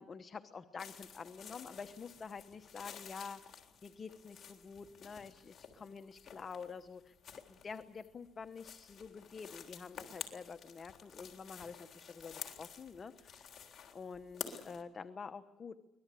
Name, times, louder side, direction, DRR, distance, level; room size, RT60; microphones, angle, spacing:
voice 1, 0.0-7.1 7.5-13.5 13.9-15.8, left 5 dB, 40° left, 9 dB, 1.1 m, -48 dB
sound 1, 0.8-14.8, left 7 dB, 55° left, 3.6 m, -51 dB
24.5 x 19.5 x 8.4 m, 0.99 s
cardioid pair, 90°, 0 cm